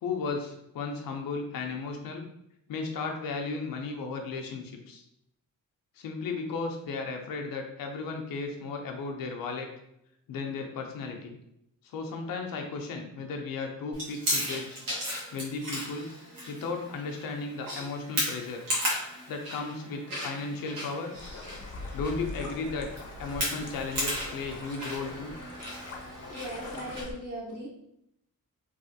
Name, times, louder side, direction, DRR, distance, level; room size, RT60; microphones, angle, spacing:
voice 1, 0.0-2.2 2.7-5.0 6.0-9.7 10.3-11.4 11.8-14.8 15.3-16.1 16.5-19.0 19.3-21.1 21.9-22.9 23.2-25.3, left 4 dB, 90° left, 3 dB, 0.6 m, -35 dB
Chewing mastication, 13.9-27.0, equal, 80° right, 1.3 m, -36 dB
sound 1, 21.1-27.1, left 3 dB, 50° left, 0.6 m, -43 dB
voice 2, 26.3-27.7, right 1 dB, 30° right, -10 dB, 0.9 m, -38 dB
3.3 x 2.4 x 2.6 m, 0.78 s
cardioid pair, 135°, 33 cm